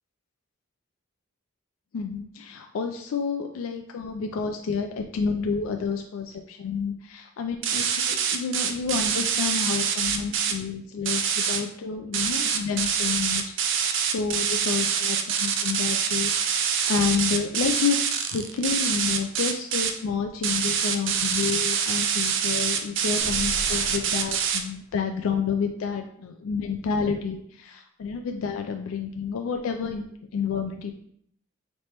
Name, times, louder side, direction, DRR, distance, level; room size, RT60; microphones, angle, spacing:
voice 1, 1.9-16.3 16.9-18.0 18.3-30.0 30.3-30.9, left 5 dB, 75° left, 4 dB, 0.3 m, -29 dB
sound 1, 7.6-10.5 11.1-11.6 12.1-19.9 20.4-24.6, right 7 dB, 60° right, 0.5 m, -25 dB
sound 2, 23.2-25.0, equal, 10° right, 1.4 m, -39 dB
3.3 x 2.9 x 4.3 m, 0.67 s
head